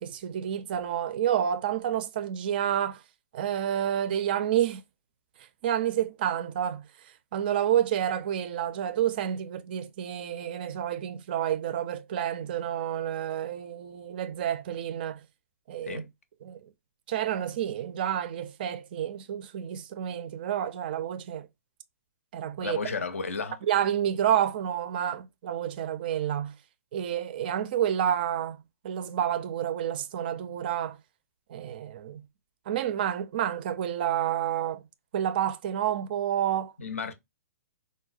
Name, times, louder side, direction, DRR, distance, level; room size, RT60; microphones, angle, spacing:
voice 1, 0.0-3.0 3.3-4.8 5.6-6.8 7.3-15.2 15.7-16.0 16.4-16.6 17.1-21.5 22.3-22.8 23.7-26.5 26.9-31.0 31.5-32.2 32.7-34.8 35.1-36.7, right 10 dB, 40° right, 0.4 m, -29 dB
voice 2, 22.6-23.6 36.8-37.1, left 4 dB, 65° left, 0.6 m, -33 dB
3.9 x 2.1 x 2.4 m
figure-of-eight pair, 120°, 8 cm